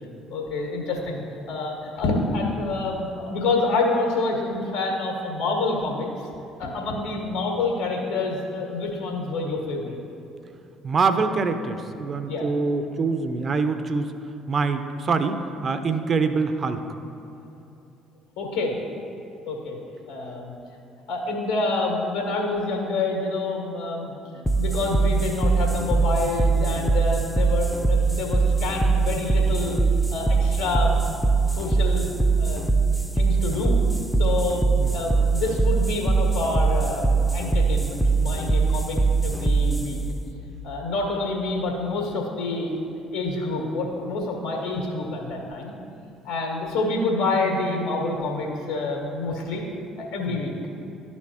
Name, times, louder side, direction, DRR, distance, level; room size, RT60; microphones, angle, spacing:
voice 1, 0.3-1.2 1.5-6.1 6.6-10.0 12.3-12.5 18.4-18.8 19.4-19.8 20.1-20.5 21.1-29.8 30.1-31.0 31.5-32.8 33.1-33.8 34.2-40.0 40.6-42.8 43.1-45.7 46.2-49.6 50.1-50.5, left 3 dB, 75° left, 0 dB, 1.6 m, -27 dB
voice 2, 10.8-14.1 14.5-16.8 34.8-34.9 50.3-50.4, right 4 dB, 40° right, 9 dB, 0.6 m, -25 dB
sound 1, 24.5-41.5, right 4 dB, 5° left, 0.5 m, -22 dB
12.5 x 4.3 x 2.9 m, 2.8 s
figure-of-eight pair, 50°, 0 cm